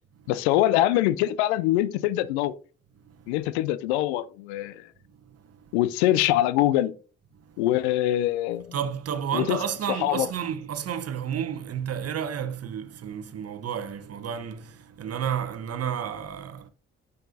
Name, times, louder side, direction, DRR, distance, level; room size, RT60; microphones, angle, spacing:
voice 1, 0.3-2.6 3.3-4.9 5.7-6.9 7.6-8.7 9.3-9.6 10.0-10.3, left 14 dB, 80° left, 0.5 m, -24 dB
voice 2, 5.3-5.7 7.5-7.6 8.7-16.7, right 8 dB, 50° right, 1.0 m, -31 dB
9.0 x 6.8 x 2.7 m
hypercardioid pair, 40°, 32 cm